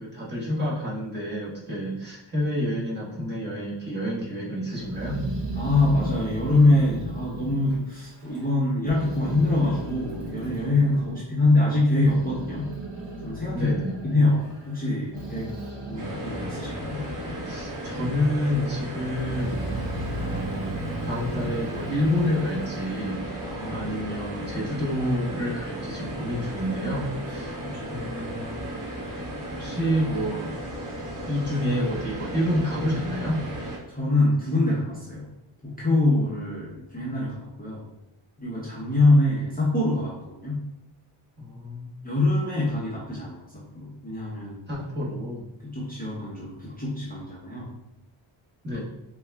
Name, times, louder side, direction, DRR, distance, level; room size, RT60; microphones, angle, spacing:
voice 1, 0.0-5.2 13.5-13.9 17.4-19.7 20.1-20.8 21.0-23.2 23.7-27.6 27.9-28.6 29.5-30.5 31.3-33.4 41.4-41.9 44.7-45.5 48.6-48.8, equal, 20° right, -7 dB, 1.1 m, -28 dB
Growling, 4.8-8.5 8.8-11.2 11.7-17.6 17.9-18.6 19.1-22.8, right 1 dB, 60° right, 1.3 m, -36 dB
voice 2, 5.6-12.7 13.2-13.8 14.0-15.5 15.9-17.2 23.4-23.9 27.6-28.4 33.9-35.3 35.6-37.9 38.4-40.7 42.0-44.6 45.6-47.7, left 2 dB, 20° left, -7 dB, 0.6 m, -24 dB
sound 1, 16.0-33.8, right 1 dB, 40° right, 0.9 m, -35 dB
3.6 x 2.2 x 3.3 m, 0.87 s
wide cardioid pair, 145°, 48 cm